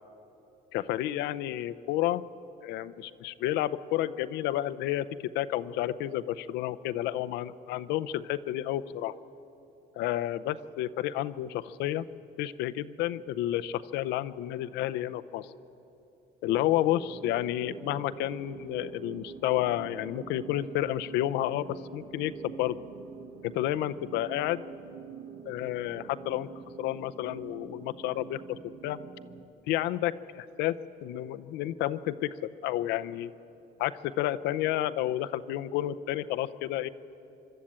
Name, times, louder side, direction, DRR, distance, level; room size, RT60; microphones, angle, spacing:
voice 1, 0.7-2.2 2.6-5.1 5.3-9.1 10.0-12.1 12.4-15.5 16.4-22.8 23.4-24.6 25.5-26.5 26.8-29.0 29.7-30.8 31.0-32.3 32.6-33.3 33.8-36.9, left 13 dB, 90° left, 12 dB, 0.6 m, -30 dB
sound 1, 16.5-29.4, right 7 dB, 70° right, 1.3 m, -46 dB
25.0 x 12.5 x 8.7 m, 2.9 s
cardioid pair, 110°, 17 cm